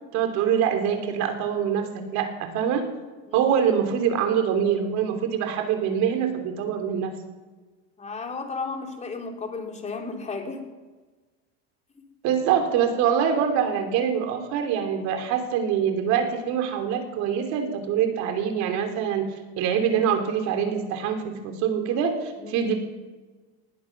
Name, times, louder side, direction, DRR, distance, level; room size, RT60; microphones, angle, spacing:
voice 1, 0.1-2.9 3.3-7.1 12.2-22.7, right 8 dB, 60° right, 6 dB, 3.2 m, -24 dB
voice 2, 8.0-10.6 22.4-22.6, left 4 dB, 20° left, 3 dB, 3.0 m, -33 dB
19.5 x 12.0 x 6.0 m, 1.3 s
supercardioid pair, 120°, 31 cm